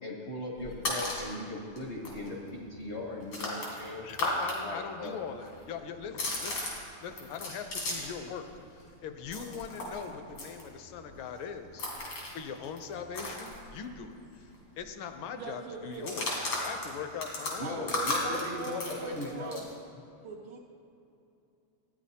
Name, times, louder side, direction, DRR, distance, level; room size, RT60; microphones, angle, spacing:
voice 1, 0.0-4.1 4.6-5.2 17.6-19.6, left 2 dB, 50° left, -1 dB, 0.8 m, -38 dB
sound 1, 0.6-1.3 1.8-1.9 2.0-4.6 4.8-8.2 8.5-14.2 14.4-14.6 14.8-15.2 15.9-19.7, left 2 dB, 90° left, 3.2 m, -36 dB
voice 2, 4.0-6.7 7.0-11.9 12.3-14.5 14.8-16.3 16.6-17.9, left 6 dB, 75° left, 7 dB, 1.4 m, -41 dB
voice 3, 15.4-16.2 17.6-19.7 20.2-20.6, right 5 dB, 75° right, -2 dB, 1.5 m, -42 dB
14.0 x 9.6 x 2.8 m, 2.7 s
omnidirectional pair, 2.4 m